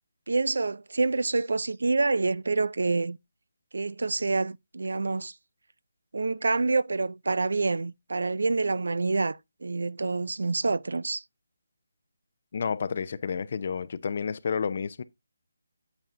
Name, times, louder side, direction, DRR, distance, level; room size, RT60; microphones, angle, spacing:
voice 1, 0.3-3.2 3.7-5.3 6.1-11.2, right 3 dB, 80° right, 0.5 m, -27 dB
voice 2, 12.5-15.0, left 6 dB, 40° left, 0.7 m, -30 dB
9.1 x 8.0 x 2.6 m
hypercardioid pair, 170°, 0 cm